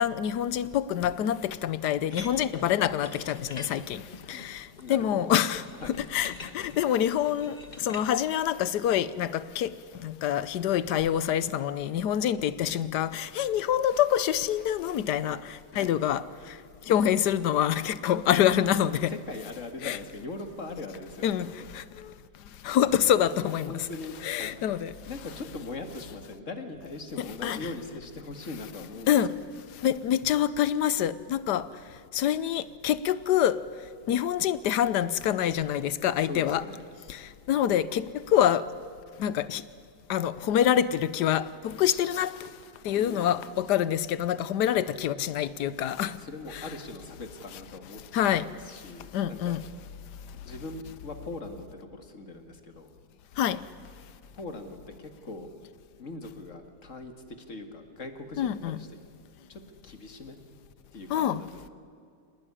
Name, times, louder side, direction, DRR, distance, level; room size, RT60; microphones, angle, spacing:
voice 1, 0.0-4.0 4.3-5.6 5.9-9.7 10.0-16.5 16.9-19.1 19.8-20.0 21.2-22.1 22.6-23.9 24.2-24.9 27.2-27.7 29.1-29.4 29.8-31.7 32.1-33.6 34.1-36.6 37.1-38.7 39.2-39.6 40.1-42.3 42.8-46.2 46.5-46.6 48.1-48.5 49.1-49.6 53.4-53.6 58.4-58.8 61.1-61.4, left 10 dB, 75° left, 1.3 m, -26 dB
sound 1, 2.1-8.1, left 3 dB, 25° left, 1.6 m, -45 dB
voice 2, 4.8-5.3 5.8-6.0 15.7-16.0 19.1-21.7 23.7-29.5 36.1-36.8 41.8-42.0 42.5-42.6 42.9-43.4 46.2-48.0 48.3-49.6 50.4-52.9 54.3-55.5 56.0-58.9 59.5-60.4 60.9-61.7, left 2 dB, 45° left, 2.3 m, -41 dB
25.5 x 19.0 x 10.0 m
omnidirectional pair, 1.8 m